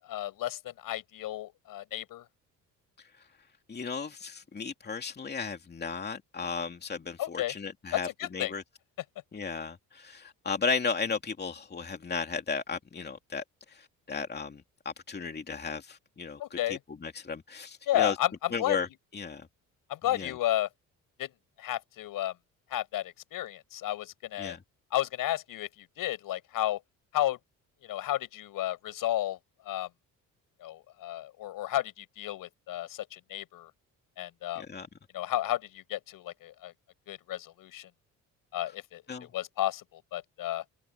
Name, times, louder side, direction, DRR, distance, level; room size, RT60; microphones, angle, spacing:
voice 1, 0.0-2.2 7.2-7.5 7.9-8.5 16.4-16.8 17.9-18.8 19.9-20.7 21.2-21.3 21.6-22.3 22.7-24.6 24.9-26.8 27.1-27.4 27.8-29.4 29.7-29.9 30.6-33.7 34.2-34.6 35.1-36.7 37.1-37.9 38.5-40.6, left 13 dB, 75° left, 6.9 m, -32 dB
voice 2, 3.7-8.6 9.3-18.2 18.5-18.9 19.1-19.5 20.1-20.3 24.4-24.6 34.6-34.9 39.1-39.3, left 5 dB, 30° left, 2.7 m, -35 dB
cardioid pair, 90°, 34 cm